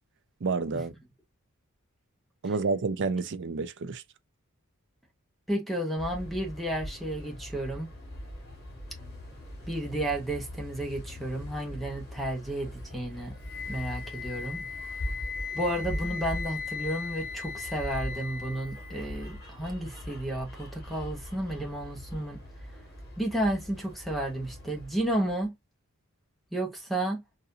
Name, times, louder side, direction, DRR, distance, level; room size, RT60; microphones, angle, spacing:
voice 1, 0.4-0.9 2.4-4.0, right 4 dB, 55° right, 0.5 m, -29 dB
voice 2, 5.5-7.9 9.7-13.3 13.7-14.7 15.5-22.4 23.2-25.5 26.5-27.2, right 1 dB, ahead, 1.0 m, -32 dB
sound 1, 6.0-25.5, equal, 50° left, 2.3 m, -41 dB
Wind instrument woodwind instrument, 13.4-19.4, left 6 dB, 70° left, 0.8 m, -38 dB
4.1 x 2.6 x 2.6 m
head